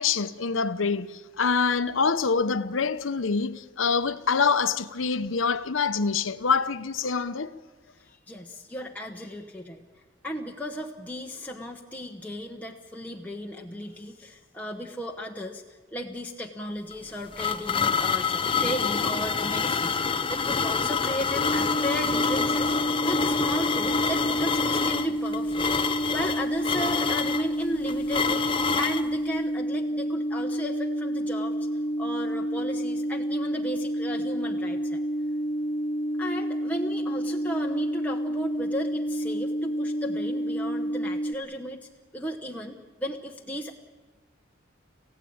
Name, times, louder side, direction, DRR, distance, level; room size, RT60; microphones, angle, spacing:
voice 1, 0.0-7.5, left 5 dB, 85° left, 0.9 m, -25 dB
voice 2, 8.0-25.7 26.1-28.5 28.8-31.6 32.0-35.0 36.2-43.7, equal, 10° left, 1.0 m, -35 dB
sound 1, 16.9-29.1, left 5 dB, 25° left, 0.7 m, -27 dB
sound 2, 21.4-41.3, equal, 45° left, 1.4 m, -29 dB
28.0 x 16.0 x 8.7 m
head